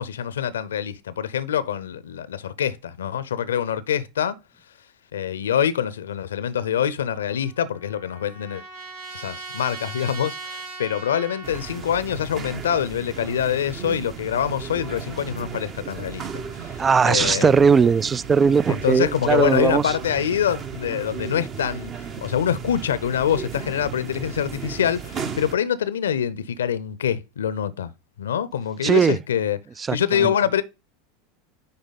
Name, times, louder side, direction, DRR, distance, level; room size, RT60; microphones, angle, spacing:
voice 1, 0.0-4.4 5.1-8.6 9.1-17.6 18.7-27.9 28.2-29.6 29.9-30.6, left 9 dB, 80° left, 0.7 m, -25 dB
Trumpet, 7.1-11.9, right 3 dB, 70° right, 2.3 m, -39 dB
sound 1, 11.4-25.5, right 6 dB, 40° right, 1.2 m, -35 dB
voice 2, 16.8-19.8 28.8-29.2 29.9-30.0, right 6 dB, 25° right, 0.3 m, -18 dB
9.8 x 3.4 x 4.1 m
hypercardioid pair, 85°, 0 cm